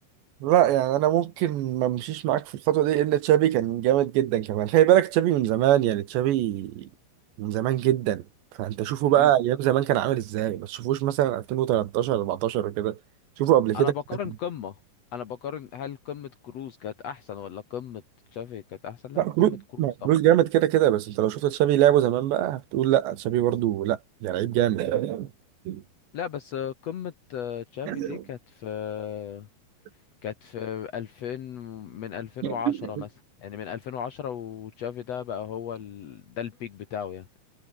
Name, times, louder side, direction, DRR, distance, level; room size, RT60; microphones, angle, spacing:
voice 1, 0.4-6.9 7.4-8.2 8.6-13.0 13.4-13.9 19.2-25.3 25.7-25.8 27.9-28.2 32.4-32.9, right 12 dB, 80° right, 3.7 m, -23 dB
voice 2, 13.7-14.7 15.1-18.0 18.3-20.1 26.1-29.5 30.2-33.1 33.4-37.3, left 8 dB, 85° left, 1.4 m, -36 dB
omnidirectional pair, 5.1 m